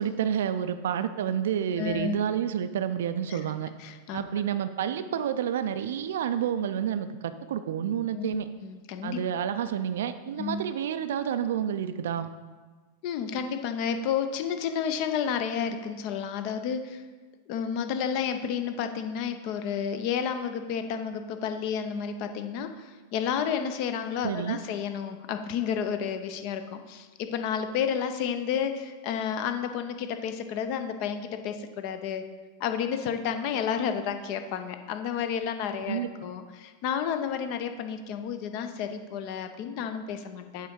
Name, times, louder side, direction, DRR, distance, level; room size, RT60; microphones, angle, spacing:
voice 1, 0.0-3.7 4.1-8.5 9.0-12.3 24.2-24.6 35.9-36.1, right 9 dB, 60° right, 11 dB, 0.4 m, -29 dB
voice 2, 1.8-2.2 3.3-3.4 3.8-4.2 8.1-8.4 8.6-9.2 10.4-10.6 13.0-17.0 17.5-32.3 32.6-40.7, left 7 dB, 45° left, 8 dB, 0.5 m, -31 dB
8.0 x 3.9 x 4.7 m, 1.3 s
figure-of-eight pair, 90°, 0 cm